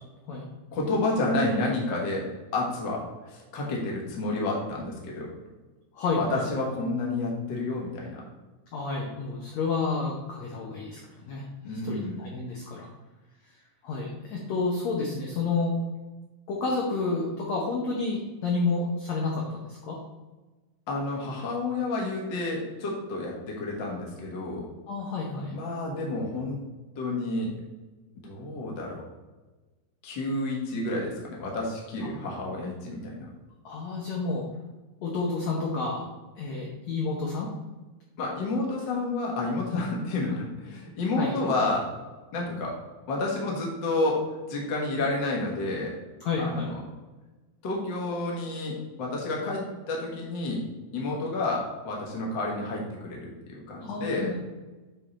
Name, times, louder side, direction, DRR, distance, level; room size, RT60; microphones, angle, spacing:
voice 1, 0.7-5.3 6.2-8.2 11.6-12.2 20.9-24.7 25.5-26.6 26.9-27.5 28.2-29.0 30.0-33.2 38.2-41.9 42.3-42.8 43.1-45.9 46.4-46.7 47.6-50.6 50.9-54.3, left 2 dB, 55° left, -2 dB, 1.2 m, -30 dB
voice 2, 5.9-6.4 8.7-11.0 11.3-12.9 13.8-15.8 16.5-20.0 24.9-25.5 32.0-32.1 33.6-34.4 35.0-36.0 36.4-37.5 39.7-39.8 41.2-41.3 46.2-46.7 53.8-54.3, left 3 dB, 75° left, -2 dB, 1.6 m, -30 dB
8.7 x 3.8 x 4.2 m, 1.2 s
omnidirectional pair, 4.4 m